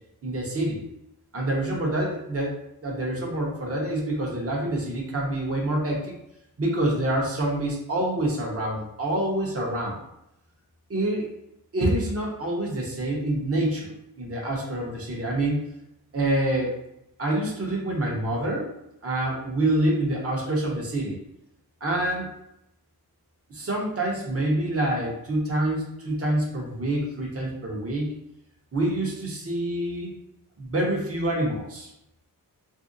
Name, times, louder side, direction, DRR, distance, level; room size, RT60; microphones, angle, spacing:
voice 1, 0.2-0.8 1.3-6.1 6.6-10.0 10.9-11.3 11.7-15.6 16.1-16.7 17.2-18.7 19.0-21.2 21.8-22.3 23.5-28.1 28.7-30.1 30.6-31.9, right 1 dB, 35° right, -2 dB, 0.9 m, -26 dB
2.7 x 2.0 x 3.8 m, 0.81 s
wide cardioid pair, 100°, 39 cm